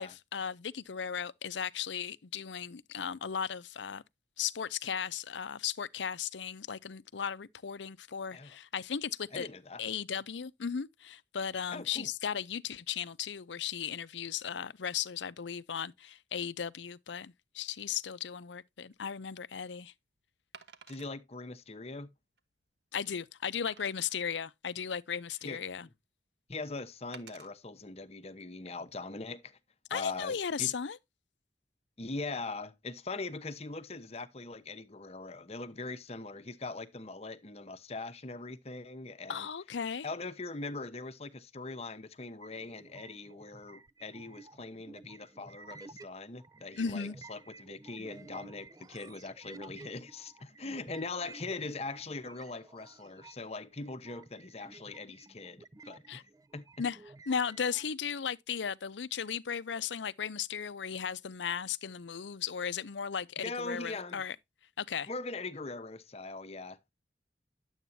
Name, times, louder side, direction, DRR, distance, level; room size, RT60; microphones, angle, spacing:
voice 1, 0.0-4.0 4.4-9.5 9.8-19.9 22.9-25.9 29.9-31.0 39.3-40.1 46.8-47.2 56.1-56.2 56.8-57.0 57.3-64.4 64.8-65.1, left 7 dB, 90° left, 0.6 m, -36 dB
voice 2, 9.3-9.8 11.7-12.1 20.9-22.1 25.4-25.6 26.5-29.6 29.9-30.7 32.0-39.5 40.0-56.2 56.5-56.7 63.4-64.2 65.1-66.8, left 3 dB, 35° left, 0.9 m, -41 dB
Wood, 18.9-19.1 20.5-21.1 21.8-21.9 22.4-22.5 23.7-24.2 24.9-25.7 27.1-27.5 28.2-28.4, right 6 dB, 75° right, 1.2 m, -53 dB
sound 1, 42.4-46.1 46.4-57.9, right 3 dB, 20° right, 0.5 m, -53 dB
11.0 x 8.1 x 2.7 m
head